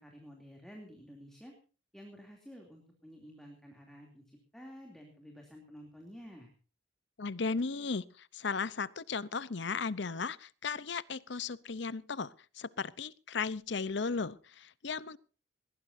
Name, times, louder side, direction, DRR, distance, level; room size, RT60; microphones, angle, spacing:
voice 1, 0.0-1.5 1.9-6.5, equal, ahead, 1 dB, 2.9 m, -51 dB
voice 2, 7.2-15.2, left 4 dB, 60° left, 18 dB, 0.7 m, -36 dB
20.5 x 18.0 x 2.7 m, 0.37 s
head